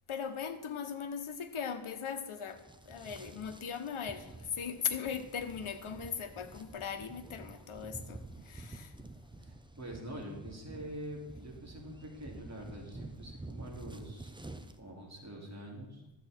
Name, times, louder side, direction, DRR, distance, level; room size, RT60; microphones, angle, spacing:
voice 1, 0.1-8.9, left 7 dB, 75° left, 1.1 m, -39 dB
sound 1, 2.4-14.8, right 2 dB, 10° right, 0.6 m, -49 dB
voice 2, 9.4-14.3 14.8-16.0, equal, 35° right, 3.1 m, -45 dB
12.0 x 8.2 x 4.4 m
wide cardioid pair, 100°, 49 cm